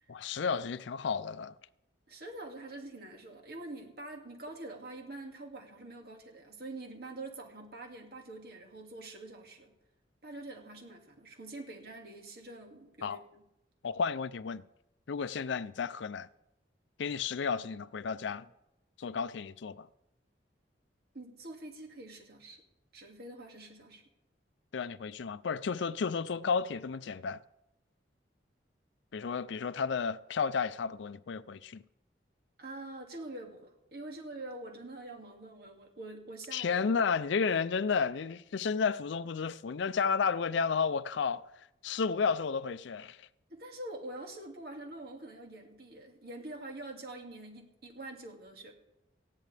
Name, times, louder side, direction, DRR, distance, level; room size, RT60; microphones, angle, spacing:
voice 1, 0.1-1.5 13.0-13.2 13.8-14.6 15.1-16.3 17.0-18.5 19.0-19.9 24.7-27.4 29.1-31.8 36.5-41.4 41.8-43.2, left 5 dB, 75° left, 0.4 m, -32 dB
voice 2, 2.1-9.7 10.2-13.2 21.1-22.6 22.9-24.0 32.6-36.8 43.5-48.7, right 2 dB, 55° right, 2.2 m, -45 dB
19.0 x 14.5 x 3.4 m
head